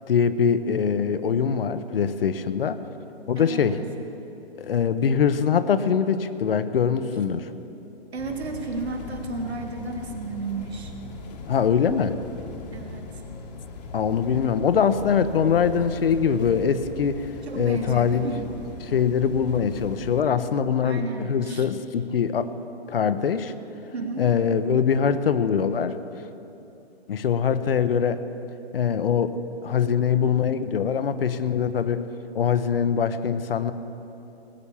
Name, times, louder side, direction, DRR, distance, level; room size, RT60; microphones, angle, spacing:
voice 1, 0.1-2.8 3.3-3.8 4.6-7.5 11.5-12.2 13.9-17.3 17.6-18.3 18.8-21.0 21.3-22.5 22.9-23.5 24.2-26.0 27.1-28.2 28.7-29.4 29.6-32.1 32.3-33.7, left 7 dB, 65° left, 12 dB, 0.8 m, -23 dB
voice 2, 3.4-3.8 8.1-10.9 12.7-13.2 17.5-18.6 20.8-21.7 23.9-24.3, right 3 dB, 90° right, 4 dB, 1.9 m, -33 dB
sound 1, 8.2-20.2, left 3 dB, 40° left, 1.2 m, -40 dB
19.0 x 7.0 x 7.0 m, 2.9 s
hypercardioid pair, 155°, 31 cm